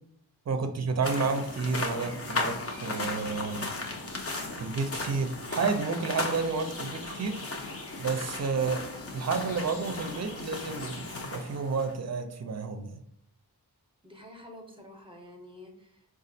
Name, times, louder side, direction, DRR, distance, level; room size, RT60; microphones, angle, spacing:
voice 1, 0.5-3.7 4.6-7.4 8.0-8.8 9.1-12.9, right 4 dB, 45° right, 7 dB, 0.5 m, -31 dB
sound 1, 1.0-11.9, left 2 dB, 35° left, 0.6 m, -36 dB
voice 2, 9.6-10.4 14.0-16.1, equal, 15° right, 2 dB, 0.8 m, -49 dB
4.1 x 2.3 x 2.6 m, 0.68 s
wide cardioid pair, 70°, 39 cm